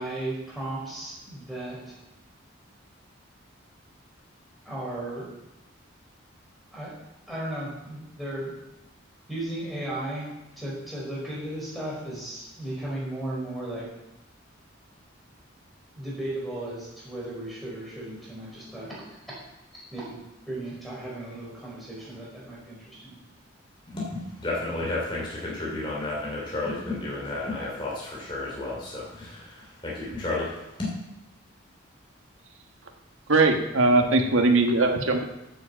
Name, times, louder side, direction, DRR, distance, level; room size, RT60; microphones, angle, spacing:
voice 1, 0.0-1.9 4.6-5.3 6.7-6.9 7.3-8.5 9.3-13.9 15.9-19.2 19.7-23.2, right 1 dB, ahead, -6 dB, 4.7 m, -35 dB
voice 2, 23.9-30.6, left 2 dB, 25° left, -4 dB, 3.0 m, -32 dB
voice 3, 33.3-35.2, right 2 dB, 75° right, 4 dB, 1.4 m, -20 dB
9.5 x 7.8 x 7.5 m, 0.94 s
head